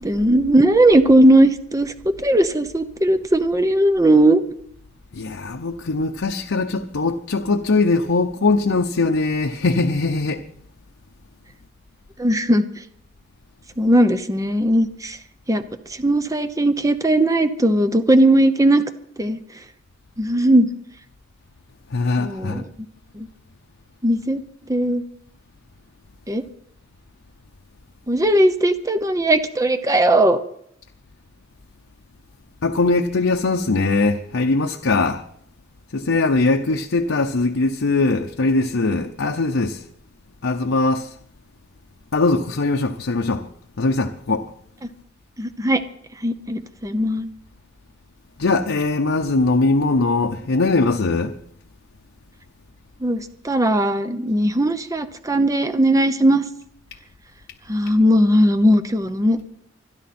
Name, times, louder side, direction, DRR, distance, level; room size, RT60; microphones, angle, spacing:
voice 1, 0.0-4.4 12.2-12.6 13.8-15.2 15.5-15.6 15.9-18.8 19.2-19.4 20.2-20.7 22.2-22.6 23.1-23.3 24.0-24.4 24.7-25.0 26.3-26.4 28.1-30.4 45.4-45.8 46.2-47.3 53.0-56.4 57.7-59.4, right 1 dB, 15° right, 0.8 m, -18 dB
voice 2, 5.1-10.4 21.9-22.7 32.6-35.2 35.9-39.8 40.4-41.1 42.1-43.5 43.8-44.5 48.4-51.3, left 3 dB, 75° left, 0.8 m, -21 dB
25.5 x 10.5 x 4.3 m
head